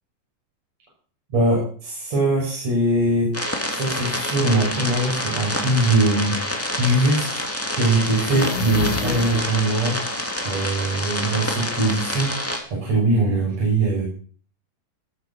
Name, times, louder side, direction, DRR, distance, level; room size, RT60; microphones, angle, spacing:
voice 1, 1.3-3.3 3.7-7.4 7.7-10.0 10.4-14.1, right 2 dB, 50° right, -5 dB, 8.0 m, -22 dB
sound 1, 3.3-12.6, left 1 dB, 5° left, 1.6 m, -27 dB
sound 2, 8.2-9.7, left 9 dB, 85° left, 3.1 m, -30 dB
20.0 x 7.6 x 6.6 m, 0.43 s
omnidirectional pair, 4.1 m